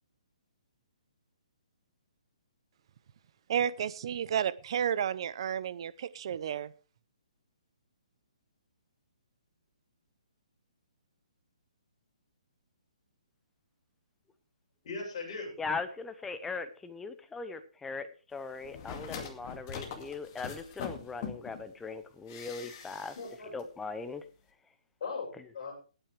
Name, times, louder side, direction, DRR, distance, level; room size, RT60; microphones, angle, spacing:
voice 1, 3.5-6.7, right 9 dB, 45° right, 18 dB, 0.7 m, -32 dB
voice 2, 14.8-15.5 23.1-23.5 25.0-25.7, left 4 dB, 45° left, -1 dB, 7.4 m, -38 dB
voice 3, 15.6-23.1 23.5-24.2, left 4 dB, 5° left, 10 dB, 0.8 m, -39 dB
sound 1, 18.6-21.6 22.3-23.3 23.6-23.7, left 6 dB, 30° left, 2.2 m, -42 dB
20.5 x 9.0 x 3.4 m, 0.36 s
hypercardioid pair, 165°, 4 cm